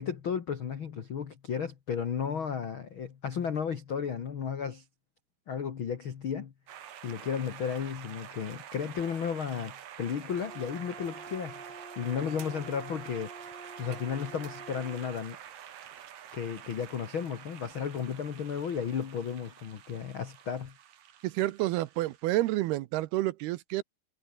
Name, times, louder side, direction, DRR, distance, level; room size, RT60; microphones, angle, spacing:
voice 1, 0.0-4.8 5.5-6.5 7.0-15.4 16.3-20.7, left 7 dB, 65° left, 1.2 m, -34 dB
sound 1, 6.7-22.7, right 10 dB, 55° right, 2.5 m, -48 dB
Wind instrument woodwind instrument, 10.4-15.1, right 3 dB, 30° right, 1.0 m, -47 dB
voice 2, 21.2-23.8, right 17 dB, 75° right, 2.7 m, -29 dB
omnidirectional pair, 4.8 m